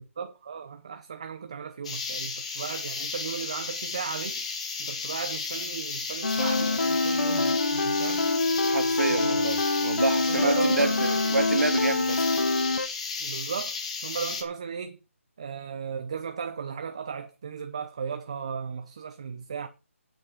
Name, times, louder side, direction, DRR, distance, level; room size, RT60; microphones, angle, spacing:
voice 1, 0.0-4.4 4.8-8.3 9.1-9.4 10.3-11.4 13.2-15.0 15.4-19.7, right 6 dB, 25° right, 0.7 m, -36 dB
sound 1, 1.8-14.4, left 4 dB, 25° left, 2.0 m, -34 dB
sound 2, 6.2-12.9, left 3 dB, 85° left, 1.5 m, -25 dB
voice 2, 8.6-12.2, right 3 dB, 85° right, 2.6 m, -28 dB
8.9 x 7.9 x 7.6 m
hypercardioid pair, 175°, 8 cm